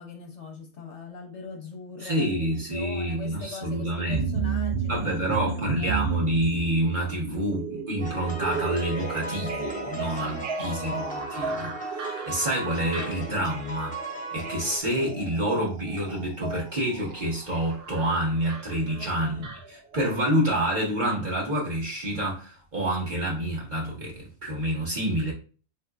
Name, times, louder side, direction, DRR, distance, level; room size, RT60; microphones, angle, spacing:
voice 1, 0.0-6.0 10.1-11.2 19.2-19.5, left 4 dB, 65° left, 1.1 m, -42 dB
voice 2, 2.0-4.3 4.9-14.0 14.3-25.3, right 1 dB, 40° right, 1.5 m, -28 dB
sound 1, 4.1-20.2 20.5-20.6, right 5 dB, 60° right, 0.8 m, -34 dB
sound 2, 8.0-14.8, right 1 dB, 10° left, 0.5 m, -37 dB
4.4 x 3.1 x 2.3 m
omnidirectional pair, 1.3 m